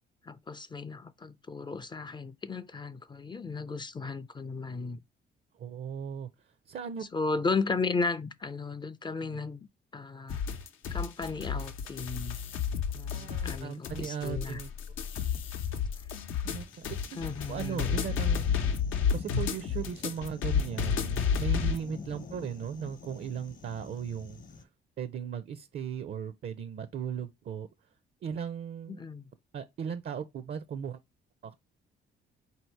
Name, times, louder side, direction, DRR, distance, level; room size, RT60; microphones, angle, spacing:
voice 1, 0.2-5.0 7.1-9.7 9.9-10.4 10.9-12.4 12.9-14.6 17.1-18.0 28.9-29.3, left 4 dB, 25° left, 0.4 m, -35 dB
voice 2, 5.5-6.3 6.7-7.1 9.2-9.4 13.1-14.7 16.4-17.2 17.5-18.6 19.1-24.7 25.0-27.7 28.2-29.0 29.5-31.0 31.4-31.6, right 8 dB, 50° right, 0.5 m, -37 dB
sound 1, 10.3-21.8, left 7 dB, 85° left, 0.8 m, -31 dB
sound 2, 16.7-24.6, left 4 dB, 45° left, 0.8 m, -47 dB
4.2 x 2.7 x 4.4 m
cardioid pair, 90°, 20 cm